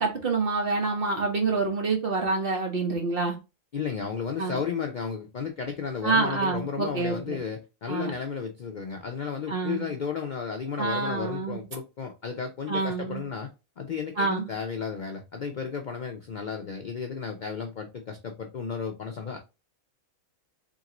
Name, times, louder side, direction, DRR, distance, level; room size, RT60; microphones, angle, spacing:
voice 1, 0.0-3.3 4.4-4.6 6.0-7.4 7.9-8.1 9.5-9.9 10.8-11.6 12.7-13.2 14.2-14.5, right 3 dB, 45° right, 1.3 m, -27 dB
voice 2, 3.7-19.4, left 6 dB, 55° left, 0.5 m, -33 dB
3.8 x 3.6 x 2.9 m
omnidirectional pair, 1.4 m